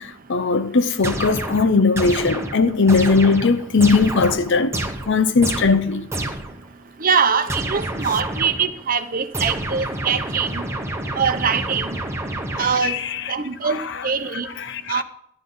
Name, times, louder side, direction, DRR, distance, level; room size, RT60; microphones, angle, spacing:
voice 1, 0.0-6.1 12.6-13.3 13.6-14.1 14.6-15.0, left 4 dB, 60° left, 0.7 m, -19 dB
sound 1, 1.0-6.7 7.5-8.8 9.3-13.0, right 1 dB, 15° right, 1.1 m, -29 dB
voice 2, 7.0-10.6 11.1-11.9 12.6-13.0 13.3-13.8 14.0-14.5 14.9-15.0, right 6 dB, 45° right, 0.8 m, -22 dB
12.0 x 11.5 x 3.9 m
head